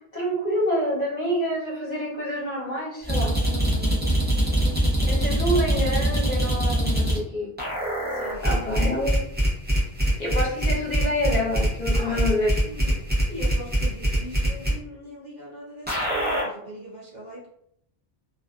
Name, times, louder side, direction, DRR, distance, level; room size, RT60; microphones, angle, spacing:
voice 1, 0.1-3.3 5.1-7.5 8.4-9.2 10.2-12.5, equal, 45° left, -5 dB, 0.9 m, -27 dB
sound 1, 3.1-7.2 7.6-14.7 15.9-16.4, right 1 dB, 10° right, 0.7 m, -23 dB
voice 2, 3.4-5.4 6.9-7.1 8.0-8.9 11.9-12.3 12.6-17.5, equal, 45° right, -5 dB, 0.9 m, -41 dB
2.5 x 2.4 x 2.3 m, 0.70 s
omnidirectional pair, 1.1 m